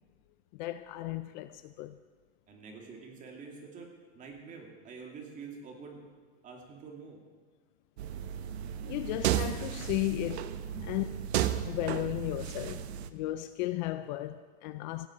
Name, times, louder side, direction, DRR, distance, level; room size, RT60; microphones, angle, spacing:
voice 1, 0.5-2.0 8.9-10.5 10.9-11.1 11.6-12.8 13.1-15.1, left 16 dB, 45° left, 0.5 m, -34 dB
voice 2, 2.5-3.9 4.1-6.0 6.4-7.2 10.7-10.9, right 4 dB, 25° right, 2.6 m, -46 dB
sound 1, 8.0-13.1, right 10 dB, 75° right, 1.0 m, -34 dB
16.0 x 8.1 x 8.5 m
supercardioid pair, 160°, 32 cm